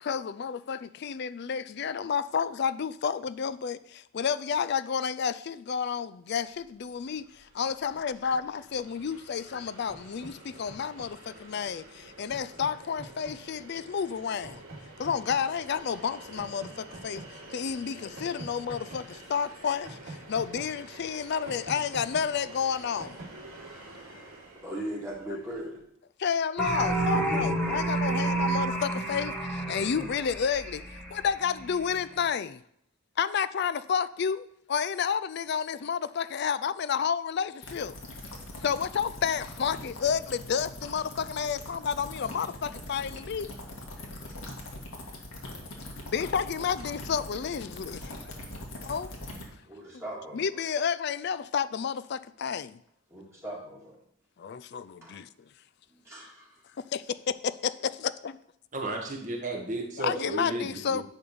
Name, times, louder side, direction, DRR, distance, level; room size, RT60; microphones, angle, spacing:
voice 1, 0.0-14.6 15.0-23.2 26.2-32.6 33.2-38.0 38.6-43.5 46.1-48.4 48.7-49.1 50.3-52.8 54.4-55.3 56.9-58.4 60.0-61.0, left 7 dB, 50° left, 0.4 m, -31 dB
Train, 6.9-7.0 7.2-25.6, right 2 dB, 70° right, 3.1 m, -46 dB
voice 2, 24.6-25.8 27.1-28.1 48.0-48.1 49.7-50.6 53.1-54.0 55.0-55.2 56.0-56.5, right 1 dB, 15° right, 2.0 m, -39 dB
sound 1, 26.6-32.1, right 2 dB, 5° left, 1.1 m, -30 dB
sound 2, 37.6-49.4, left 1 dB, 80° left, 1.8 m, -42 dB
voice 3, 58.7-61.0, right 2 dB, 35° right, 1.6 m, -33 dB
10.5 x 3.6 x 7.0 m
head